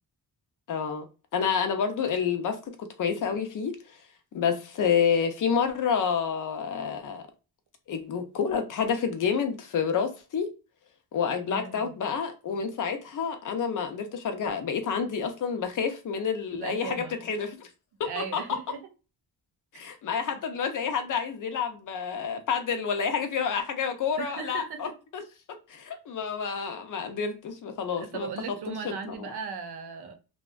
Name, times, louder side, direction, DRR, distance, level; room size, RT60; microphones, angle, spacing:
voice 1, 0.7-4.0 4.3-7.2 7.9-10.5 11.1-17.7 18.0-18.4 19.7-25.2 25.7-28.6 28.8-29.3, left 6 dB, 55° left, 0.5 m, -29 dB
voice 2, 11.5-11.9 16.5-17.2 18.0-18.8 19.7-19.8 20.3-20.4 24.2-24.8 28.0-30.1, right 6 dB, 80° right, 0.7 m, -37 dB
2.6 x 2.2 x 2.4 m
wide cardioid pair, 145°, 39 cm